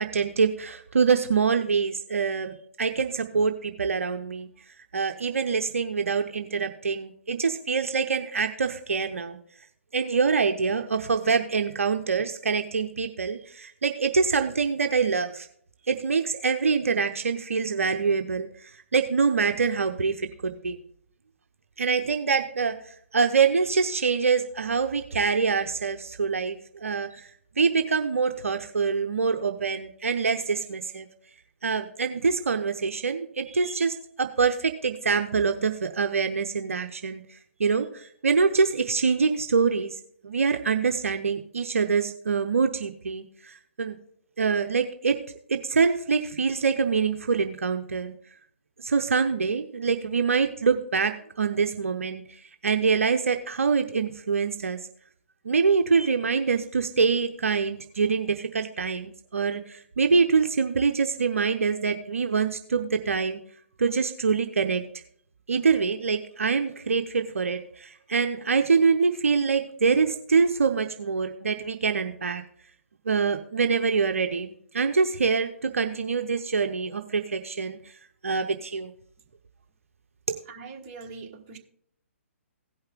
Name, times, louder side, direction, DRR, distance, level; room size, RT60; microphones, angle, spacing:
voice 1, 0.0-4.5 4.9-9.4 9.9-15.5 15.9-20.8 21.8-27.3 27.6-31.1 31.6-44.0 44.4-45.2 45.5-48.1 48.8-54.8 55.4-63.4 63.8-64.8 65.5-72.4 73.1-77.9 78.2-78.9 80.3-80.4, right 5 dB, 70° right, 6 dB, 0.7 m, -25 dB
voice 2, 80.5-81.6, right 4 dB, 30° right, 2 dB, 1.3 m, -42 dB
16.5 x 5.6 x 3.6 m, 0.65 s
figure-of-eight pair, 130°, 8 cm